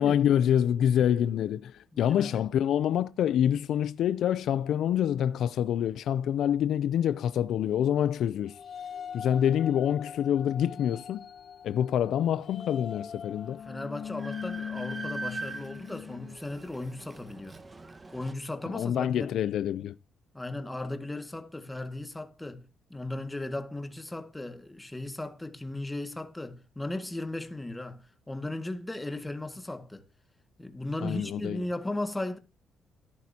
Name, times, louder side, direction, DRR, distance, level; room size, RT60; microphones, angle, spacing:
voice 1, 0.0-8.6 9.1-11.2 11.6-13.6 18.7-19.9 31.0-31.6, left 10 dB, 75° left, 0.4 m, -26 dB
voice 2, 1.9-2.4 13.7-17.6 18.1-19.3 20.3-22.6 22.9-28.0 28.3-30.0 30.6-32.4, left 2 dB, 10° left, 1.9 m, -36 dB
sound 1, 8.5-16.4, left 8 dB, 50° left, 0.8 m, -41 dB
Train, 13.4-13.5 13.8-18.3, right 3 dB, 25° right, 1.3 m, -42 dB
13.5 x 11.0 x 2.8 m
cardioid pair, 90°, 0 cm